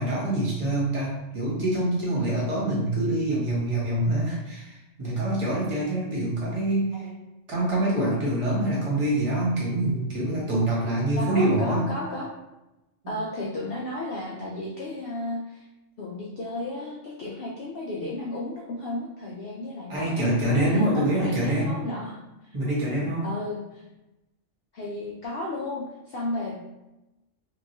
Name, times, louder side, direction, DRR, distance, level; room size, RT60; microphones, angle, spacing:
voice 1, 0.0-7.1 7.5-11.9 19.9-21.8 22.5-23.3, right 1 dB, 25° right, -7 dB, 1.0 m, -25 dB
voice 2, 11.2-12.3 13.1-15.6 16.0-22.5 23.2-23.8 24.7-26.6, left 1 dB, 65° left, -4 dB, 0.6 m, -34 dB
3.0 x 2.7 x 2.6 m, 0.97 s
omnidirectional pair, 1.4 m